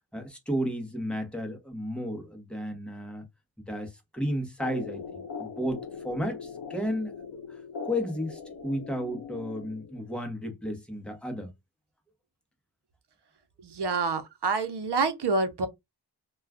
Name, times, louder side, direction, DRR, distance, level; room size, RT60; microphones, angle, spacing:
voice 1, 0.1-3.3 3.6-11.5, equal, ahead, 0.8 m, -33 dB
sound 1, 4.6-10.1, left 5 dB, 90° left, 0.7 m, -41 dB
voice 2, 13.6-15.7, right 3 dB, 65° right, 0.8 m, -27 dB
2.3 x 2.3 x 3.4 m
wide cardioid pair, 105°, 44 cm